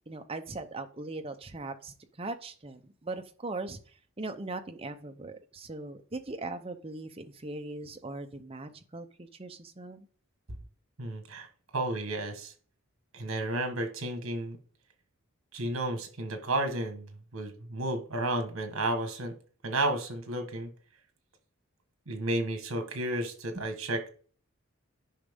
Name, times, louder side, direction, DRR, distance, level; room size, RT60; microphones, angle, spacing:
voice 1, 0.1-10.1 23.5-23.6, right 2 dB, 25° right, 7 dB, 0.7 m, -40 dB
voice 2, 11.0-11.5 11.7-12.5 13.1-14.6 15.5-19.3 19.6-20.7 22.1-24.1, right 1 dB, 75° right, 7 dB, 1.4 m, -32 dB
10.0 x 5.2 x 3.6 m, 0.44 s
head